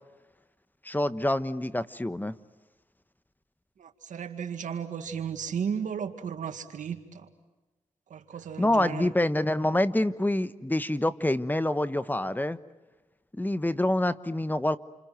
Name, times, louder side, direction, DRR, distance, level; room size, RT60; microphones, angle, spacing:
voice 1, 0.8-2.4 8.6-12.6 13.3-14.8, left 1 dB, 15° left, 13 dB, 1.2 m, -26 dB
voice 2, 3.8-7.3 8.1-9.1, right 7 dB, 90° right, 7 dB, 2.1 m, -34 dB
29.0 x 26.0 x 7.8 m, 1.1 s
cardioid pair, 55°, 13 cm